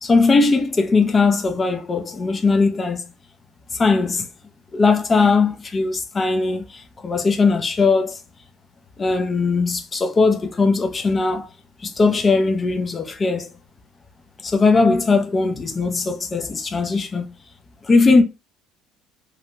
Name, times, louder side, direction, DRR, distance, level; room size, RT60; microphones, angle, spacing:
voice 1, 0.0-3.0 3.7-4.3 4.7-8.2 9.0-11.5 11.8-13.5 14.4-17.3 17.8-18.2, left 4 dB, 25° left, 0.5 m, -19 dB
2.8 x 2.1 x 2.8 m
cardioid pair, 110°, 0 cm